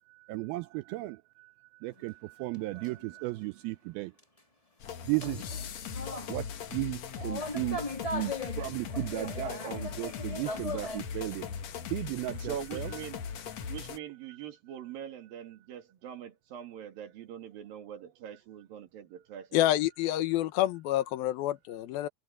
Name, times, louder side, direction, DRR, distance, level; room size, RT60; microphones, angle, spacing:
voice 1, 0.1-4.1 5.0-5.5 6.3-7.9 8.1-11.6 11.9-12.9 13.6-13.7, right 21 dB, 85° right, 2.2 m, -35 dB
sound 1, 2.0-2.1 2.5-3.1 4.2-4.3 5.2-6.4 7.1-11.0, left 2 dB, 30° left, 0.6 m, -39 dB
sound 2, 4.8-14.0, left 6 dB, 55° left, 2.1 m, -39 dB
voice 2, 12.4-13.2 13.6-19.7, right 9 dB, 60° right, 3.9 m, -43 dB
voice 3, 19.5-22.1, left 14 dB, 70° left, 2.8 m, -28 dB
omnidirectional pair, 4.8 m